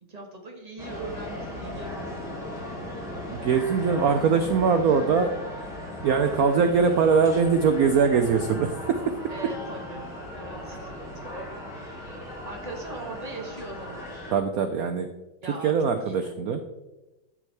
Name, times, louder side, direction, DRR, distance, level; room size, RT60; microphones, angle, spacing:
voice 1, 0.0-2.4 9.3-12.1 12.4-14.2 15.4-15.8 16.0-16.3, right 2 dB, 25° right, 2 dB, 1.1 m, -40 dB
sound 1, 0.8-14.3, left 1 dB, ahead, 3.2 m, -37 dB
voice 2, 3.3-5.3 6.0-8.7 14.3-15.1 15.6-16.6, right 5 dB, 80° right, 8 dB, 0.8 m, -22 dB
12.0 x 6.3 x 3.3 m, 1.0 s
omnidirectional pair, 2.2 m